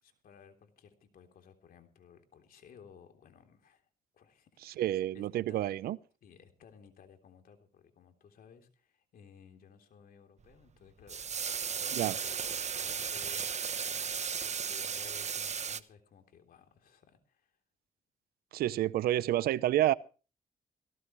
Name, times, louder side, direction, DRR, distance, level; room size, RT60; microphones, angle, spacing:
voice 1, 0.0-3.9 4.1-4.8 5.1-5.7 6.2-17.6, left 7 dB, 70° left, 3.4 m, -58 dB
voice 2, 4.6-6.0 11.9-12.1 18.5-19.9, right 13 dB, 85° right, 0.7 m, -29 dB
sound 1, 11.1-15.8, right 7 dB, 50° right, 1.0 m, -35 dB
18.0 x 17.0 x 3.2 m
cardioid pair, 65°, 15 cm